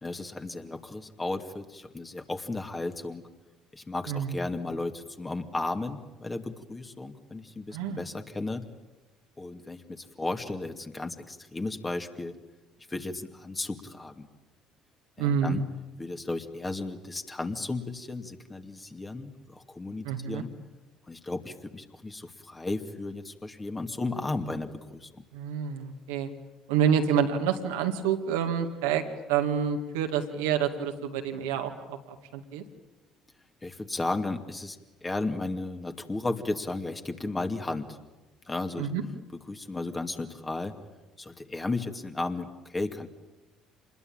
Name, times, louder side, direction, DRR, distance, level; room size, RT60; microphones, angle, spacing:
voice 1, 0.0-3.2 3.7-8.6 9.4-12.3 12.9-14.3 15.2-15.6 16.0-20.5 21.1-25.2 33.6-38.0 38.5-38.9 39.5-40.8 41.2-43.1, left 2 dB, 20° left, 6 dB, 2.5 m, -34 dB
voice 2, 4.1-4.4 7.7-8.0 15.2-15.7 20.0-20.4 25.3-26.3 26.7-29.0 29.3-32.6 38.8-39.0, right 8 dB, 80° right, 5 dB, 2.1 m, -28 dB
27.0 x 21.0 x 8.9 m, 1.1 s
hypercardioid pair, 60°, 0 cm